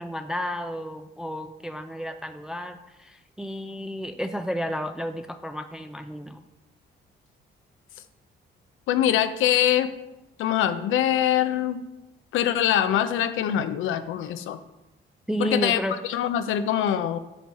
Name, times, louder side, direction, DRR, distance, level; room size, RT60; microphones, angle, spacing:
voice 1, 0.0-6.4 15.3-15.9, equal, 5° right, 7 dB, 0.4 m, -32 dB
voice 2, 8.9-9.9 10.4-11.8 12.3-14.6 15.4-17.2, left 10 dB, 85° left, 10 dB, 0.6 m, -23 dB
8.1 x 6.0 x 4.1 m, 1.0 s
cardioid pair, 90°, 20 cm